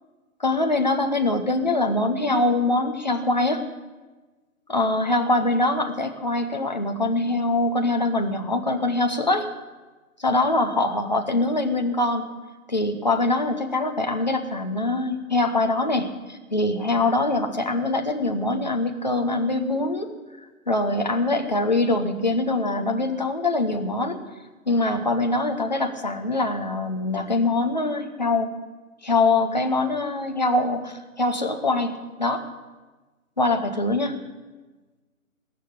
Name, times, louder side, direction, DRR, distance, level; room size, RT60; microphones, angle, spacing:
voice 1, 0.4-3.7 4.7-9.5 10.2-12.3 12.7-20.1 20.7-24.2 24.7-28.5 29.0-32.4 33.4-34.2, left 2 dB, 30° left, 4 dB, 1.0 m, -23 dB
19.0 x 6.9 x 10.0 m, 1.2 s
hypercardioid pair, 175°, 43 cm